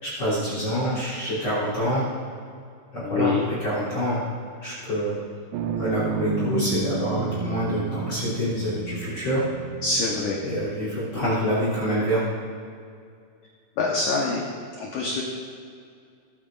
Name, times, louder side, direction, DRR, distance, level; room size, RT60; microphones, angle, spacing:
voice 1, 0.0-2.0 2.9-4.2 4.6-5.2 5.8-9.4 10.4-12.2, equal, 30° left, -7 dB, 3.4 m, -26 dB
voice 2, 3.0-3.5 9.8-10.4 13.8-14.5 14.8-15.2, left 3 dB, 70° left, -2 dB, 2.0 m, -25 dB
sound 1, 5.5-11.3, right 5 dB, 85° right, 2.9 m, -32 dB
21.5 x 8.9 x 2.5 m, 2.3 s
omnidirectional pair, 4.8 m